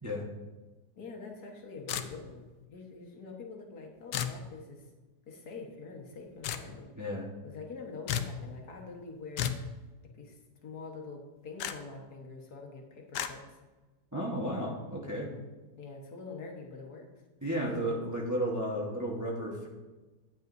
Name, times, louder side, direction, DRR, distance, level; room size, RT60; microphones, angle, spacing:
voice 1, 1.0-4.9 5.3-6.9 7.4-9.6 10.1-13.6 15.8-17.1 17.7-17.8, left 4 dB, 70° left, 1 dB, 1.8 m, -45 dB
sound 1, 1.9-2.4 4.1-4.4 6.4-6.7 8.1-8.4 9.4-9.7 11.6-11.8 13.1-13.3, left 9 dB, 85° left, 1.2 m, -33 dB
voice 2, 7.0-7.3 14.1-15.3 17.4-19.7, equal, 15° right, -3 dB, 1.0 m, -33 dB
12.0 x 9.0 x 2.6 m, 1.2 s
omnidirectional pair, 1.8 m